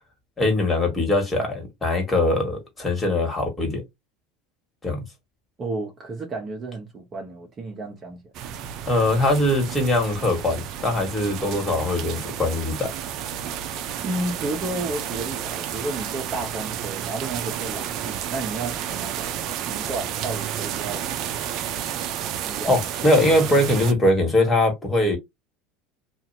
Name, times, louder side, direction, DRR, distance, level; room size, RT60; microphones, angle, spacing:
voice 1, 0.4-3.8 4.8-5.1 8.9-12.9 22.7-25.2, left 1 dB, 20° left, 1.7 m, -21 dB
voice 2, 5.6-8.3 14.0-19.2 19.6-21.1 22.4-22.7, right 2 dB, 35° right, 1.0 m, -32 dB
sound 1, 8.3-23.9, right 9 dB, 55° right, 0.5 m, -31 dB
2.8 x 2.5 x 2.7 m
supercardioid pair, 95°, 0 cm